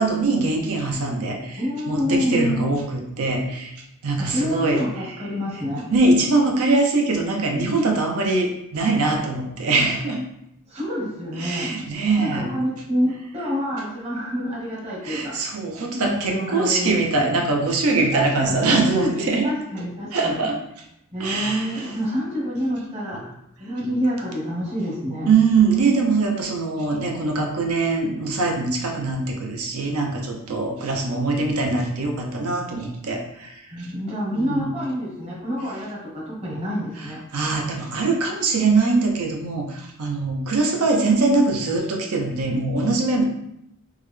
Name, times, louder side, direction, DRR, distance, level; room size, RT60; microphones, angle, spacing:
voice 1, 0.0-5.2 5.9-10.2 11.3-12.5 15.0-19.5 20.1-20.9 21.2-21.9 25.3-33.9 34.3-34.7 37.0-43.2, right 3 dB, 75° right, 2 dB, 0.6 m, -22 dB
voice 2, 1.6-2.6 4.2-5.9 10.7-11.7 12.2-15.4 16.0-17.3 18.1-20.5 21.1-23.2 23.6-25.3 33.7-37.2, equal, 30° right, -4 dB, 1.0 m, -27 dB
3.5 x 2.2 x 3.2 m, 0.80 s
head